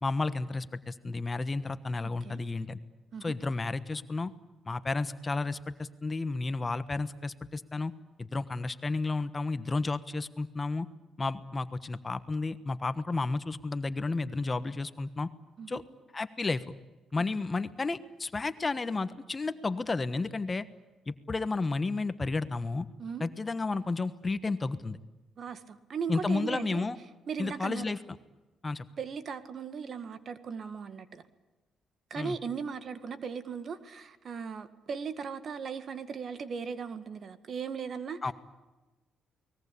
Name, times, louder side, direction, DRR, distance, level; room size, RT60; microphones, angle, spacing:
voice 1, 0.0-2.8 3.2-4.3 4.7-7.9 8.2-10.9 11.2-15.3 15.7-15.8 16.1-16.6 17.1-20.7 21.1-22.9 23.2-25.0 26.1-27.0 27.4-28.0 28.6-28.8 32.2-32.4 38.2-38.3, left 3 dB, 25° left, 12 dB, 1.3 m, -32 dB
voice 2, 25.4-26.8 27.3-27.8 29.0-31.2 32.1-38.3, right 6 dB, 50° right, 12 dB, 1.9 m, -38 dB
29.5 x 20.5 x 8.5 m, 1.1 s
cardioid pair, 90°, 0 cm